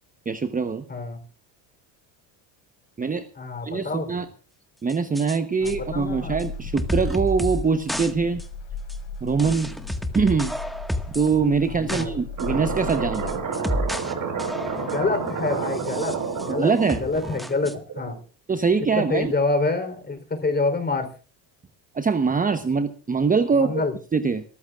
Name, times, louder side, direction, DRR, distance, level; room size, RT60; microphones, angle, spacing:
voice 1, 0.3-0.8 3.0-3.3 3.6-4.3 4.8-8.4 9.2-9.7 10.1-10.5 11.1-13.3 16.6-17.0 18.5-19.3 21.9-23.7 24.1-24.4, right 5 dB, 15° right, 10 dB, 1.0 m, -23 dB
voice 2, 0.9-1.2 3.4-4.1 5.6-6.4 11.7-12.1 14.8-16.2 16.4-16.7 17.0-18.2 19.0-21.1 23.5-23.9, left 3 dB, 20° left, 7 dB, 3.9 m, -27 dB
sound 1, 4.9-5.4 5.7-5.8 6.4-6.5 6.8-7.6 7.9-8.1 8.4-8.5 8.9-9.0 9.4-11.3 11.6-12.1 12.4-12.5 12.9-14.1 14.4-15.1 15.7-16.5 16.9-17.7, equal, ahead, 1.6 m, -30 dB
sound 2, 5.6-13.4, left 4 dB, 55° left, 5.1 m, -36 dB
sound 3, 12.4-18.2, right 5 dB, 45° right, 6.3 m, -29 dB
26.5 x 14.5 x 2.5 m, 0.38 s
supercardioid pair, 100°, 47 cm